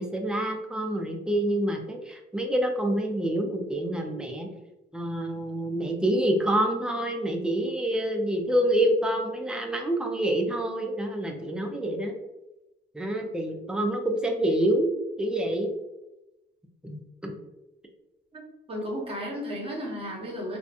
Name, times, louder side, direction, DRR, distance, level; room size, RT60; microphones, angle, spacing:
voice 1, 0.0-4.5 4.9-12.1 12.9-14.9 15.2-15.7 16.8-17.3, right 1 dB, 5° right, 2 dB, 0.4 m, -27 dB
voice 2, 18.3-20.6, equal, 30° right, -3 dB, 0.9 m, -34 dB
2.7 x 2.1 x 2.4 m, 0.95 s
cardioid pair, 90°, 20 cm